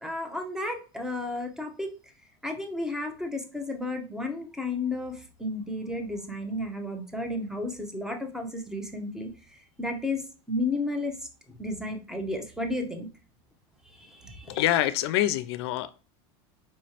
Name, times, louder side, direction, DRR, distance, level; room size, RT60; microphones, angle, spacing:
voice 1, 0.0-1.9 2.4-9.3 9.8-10.2 10.5-11.1 11.6-13.1 14.0-14.6, left 2 dB, 5° right, 0.8 m, -32 dB
voice 2, 14.5-15.9, left 14 dB, 75° left, 0.4 m, -25 dB
4.7 x 3.0 x 2.8 m
supercardioid pair, 125°, 14 cm